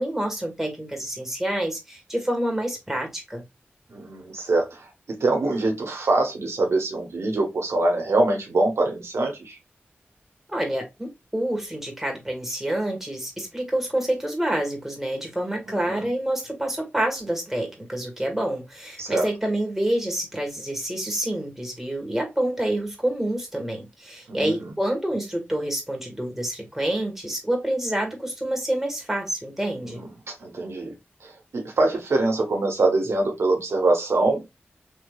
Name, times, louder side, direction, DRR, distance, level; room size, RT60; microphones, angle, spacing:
voice 1, 0.0-3.4 10.5-30.0, right 1 dB, 10° right, 1.6 m, -27 dB
voice 2, 3.9-4.8 5.1-9.6 15.7-16.1 19.0-19.3 24.3-24.5 29.9-30.1 30.4-30.9 31.2-34.4, right 2 dB, 85° right, 0.9 m, -24 dB
3.4 x 2.9 x 2.3 m
cardioid pair, 40°, 4 cm